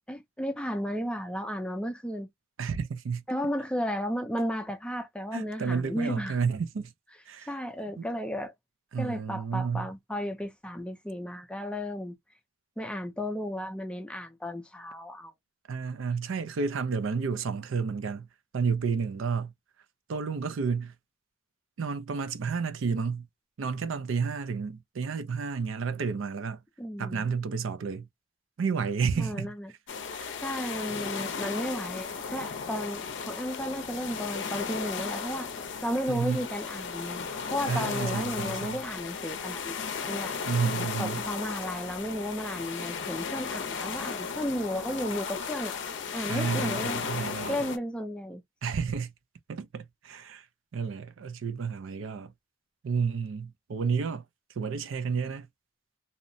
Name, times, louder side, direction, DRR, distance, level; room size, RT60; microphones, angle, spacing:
voice 1, 0.0-2.3 3.3-6.4 7.5-8.5 9.0-12.1 12.8-15.3 26.8-27.3 29.2-29.7 30.4-37.2 37.5-40.3 41.0-45.8 46.1-47.0 47.5-48.4, equal, 5° left, 0.4 m, -34 dB
voice 2, 2.6-3.2 5.3-6.9 7.3-7.5 8.0-8.1 8.9-9.9 15.7-18.3 18.5-19.5 20.1-20.9 21.8-23.3 23.6-26.6 27.0-28.1 28.6-29.5 30.1-30.3 36.1-36.4 37.7-38.8 40.5-41.2 46.3-47.6 48.6-49.1 49.5-50.5 50.7-52.3 52.8-54.2 54.6-55.5, right 5 dB, 75° right, 0.4 m, -31 dB
sound 1, 29.9-47.8, left 5 dB, 65° left, 0.5 m, -35 dB
2.7 x 2.1 x 2.6 m
head